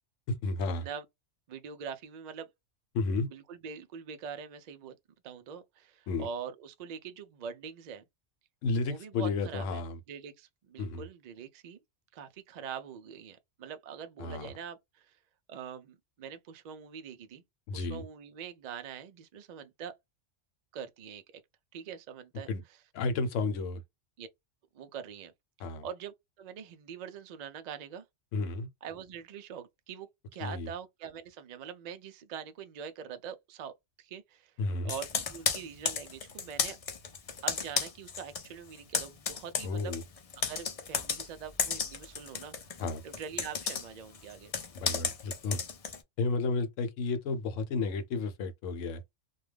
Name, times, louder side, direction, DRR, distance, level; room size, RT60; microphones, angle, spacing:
voice 1, 0.3-0.9 2.9-3.3 6.1-6.3 8.6-10.0 10.8-11.0 14.2-14.5 17.7-18.0 22.5-22.6 22.9-23.8 25.6-25.8 28.3-28.7 30.4-30.7 34.6-34.9 39.6-40.0 42.8-43.0 44.8-45.6 46.2-49.0, left 3 dB, 85° left, 1.0 m, -32 dB
voice 2, 1.5-2.5 3.3-5.0 5.2-8.0 8.8-9.8 10.1-11.8 12.1-15.2 15.5-17.4 17.7-19.9 20.7-21.4 21.7-22.8 24.2-24.3 24.7-25.3 25.6-28.0 28.8-34.5 34.8-36.8 37.4-39.9 40.5-42.6 43.0-44.5, right 7 dB, 75° right, 0.3 m, -44 dB
Computer keyboard, 34.9-38.5 38.7-46.0, left 6 dB, 55° left, 0.4 m, -34 dB
2.3 x 2.2 x 3.2 m
omnidirectional pair, 1.3 m